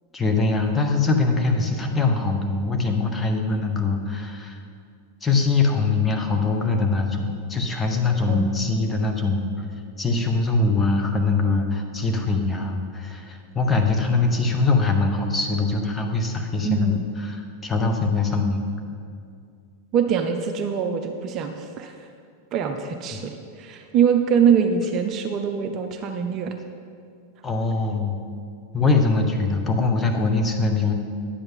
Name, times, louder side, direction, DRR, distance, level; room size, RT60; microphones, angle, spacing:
voice 1, 0.1-4.6 5.2-9.7 10.0-18.7 23.1-23.2 27.4-28.2 28.7-30.9, left 3 dB, 15° left, 3 dB, 0.9 m, -22 dB
voice 2, 8.3-8.8 16.6-17.0 19.9-21.9 22.5-26.5, right 7 dB, 35° right, 6 dB, 0.5 m, -23 dB
9.9 x 7.8 x 3.8 m, 2.3 s
figure-of-eight pair, 90°, 0 cm